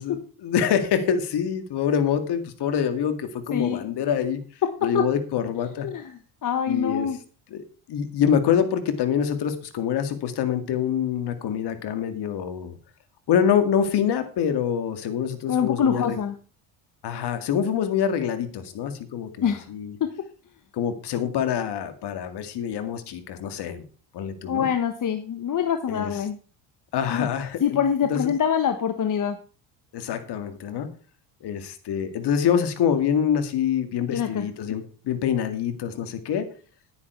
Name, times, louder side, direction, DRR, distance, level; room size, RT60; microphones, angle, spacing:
voice 1, 0.0-4.4 4.8-5.9 6.7-7.1 7.5-12.7 13.3-16.2 17.0-19.9 20.7-23.8 24.1-24.7 25.9-26.1 26.9-27.8 28.1-28.3 29.9-30.9 31.4-36.5, left 8 dB, 60° left, 9 dB, 2.2 m, -25 dB
voice 2, 3.5-3.9 4.9-5.0 5.8-6.1 6.4-7.2 15.5-16.3 19.4-19.6 20.0-20.1 24.5-26.4 27.1-27.3 27.6-29.4 34.1-34.5, left 8 dB, 45° left, 7 dB, 1.3 m, -25 dB
10.5 x 9.7 x 4.5 m, 0.36 s
supercardioid pair, 85°, 44 cm